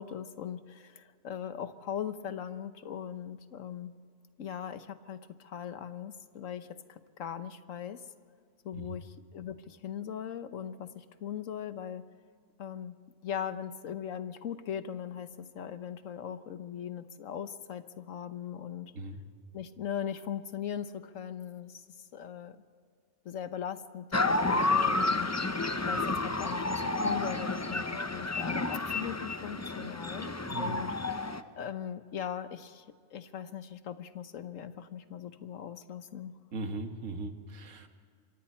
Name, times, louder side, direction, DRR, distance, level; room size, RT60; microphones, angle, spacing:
voice 1, 0.0-3.9 4.4-8.0 8.6-12.0 12.6-13.0 13.2-18.9 19.5-21.8 22.1-22.6 23.2-30.3 30.6-31.3 31.6-32.8 33.1-36.3, left 9 dB, 85° left, 11 dB, 1.3 m, -40 dB
sound 1, 24.1-31.4, left 2 dB, 20° left, 0.5 m, -30 dB
voice 2, 30.4-30.8 36.5-37.9, right 2 dB, 85° right, 6 dB, 1.8 m, -39 dB
26.5 x 23.5 x 4.4 m, 2.1 s
omnidirectional pair, 1.3 m